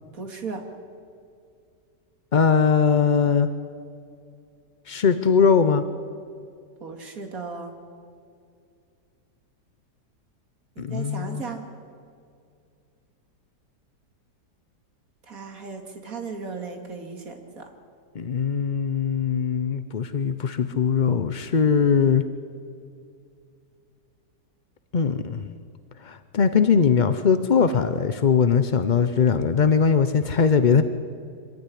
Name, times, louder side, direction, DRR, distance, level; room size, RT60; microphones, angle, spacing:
voice 1, 0.1-0.6 6.8-7.7 10.8-11.6 15.3-17.7, right 4 dB, 55° right, 4 dB, 2.7 m, -36 dB
voice 2, 2.3-3.5 4.9-5.8 10.8-11.4 18.1-22.2 24.9-25.5 26.0-30.8, left 6 dB, 55° left, 10 dB, 0.5 m, -20 dB
25.0 x 15.5 x 10.0 m, 2.4 s
omnidirectional pair, 1.8 m